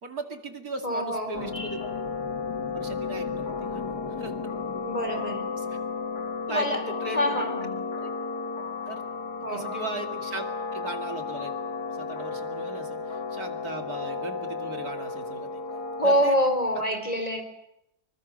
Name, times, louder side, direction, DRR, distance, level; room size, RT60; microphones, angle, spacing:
voice 1, 0.0-1.8 2.7-4.3 5.6-5.8 6.5-7.4 7.9-8.1 8.9-9.0 9.5-11.5 11.9-15.6 16.0-16.4, right 3 dB, 70° right, 5 dB, 3.0 m, -38 dB
voice 2, 0.8-1.8 4.8-5.5 6.5-6.8 7.1-7.8 9.4-9.7 16.0-17.4, equal, 25° left, 7 dB, 4.1 m, -26 dB
sound 1, 1.3-16.3, left 4 dB, 85° left, 2.5 m, -33 dB
27.0 x 24.0 x 6.4 m, 0.81 s
omnidirectional pair, 1.7 m